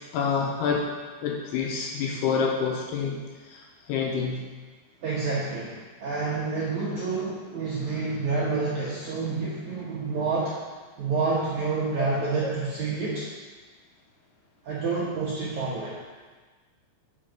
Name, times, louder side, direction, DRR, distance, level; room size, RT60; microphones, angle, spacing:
voice 1, 0.1-0.9 1.2-3.2 3.4-4.4 12.0-12.1 12.4-12.5, left 5 dB, 75° left, -1 dB, 2.6 m, -27 dB
voice 2, 5.0-10.5 11.0-13.2 14.6-16.0, right 4 dB, 70° right, -7 dB, 1.8 m, -28 dB
8.4 x 6.5 x 5.1 m, 1.4 s
omnidirectional pair, 5.2 m